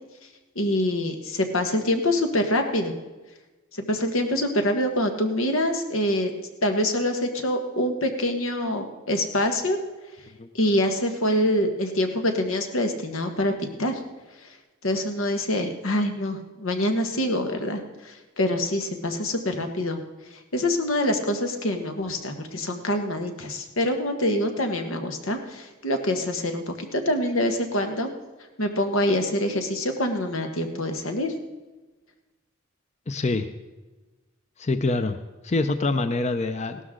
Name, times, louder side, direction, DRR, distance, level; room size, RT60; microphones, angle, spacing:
voice 1, 0.5-3.0 3.7-6.3 6.6-9.8 10.5-13.5 13.8-14.0 14.8-20.0 20.5-28.1 28.6-31.3, left 1 dB, 90° left, 5 dB, 1.5 m, -25 dB
voice 2, 33.1-33.5 34.6-35.2 35.4-36.8, left 2 dB, 35° left, 9 dB, 0.5 m, -25 dB
16.5 x 12.5 x 3.8 m, 1.2 s
head